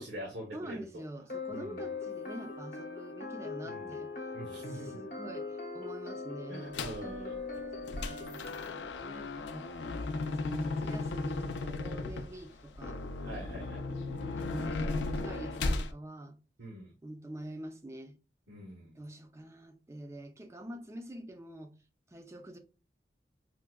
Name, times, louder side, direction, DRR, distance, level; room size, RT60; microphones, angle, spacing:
voice 1, 0.0-1.0 1.5-1.9 3.6-4.0 4.3-5.0 6.5-7.4 13.2-13.8 16.6-16.9 18.5-19.0, equal, 85° right, 0.8 m, -44 dB
voice 2, 0.5-4.1 4.6-6.8 7.8-8.5 9.0-9.7 10.3-13.0 13.9-16.4 17.0-18.2 19.0-21.7 22.1-22.6, right 1 dB, 15° right, 0.4 m, -46 dB
sound 1, 1.3-8.9, left 3 dB, 50° left, 0.7 m, -41 dB
sound 2, 6.7-7.1 7.6-15.9, left 3 dB, 85° left, 0.4 m, -35 dB
4.5 x 2.1 x 2.2 m
head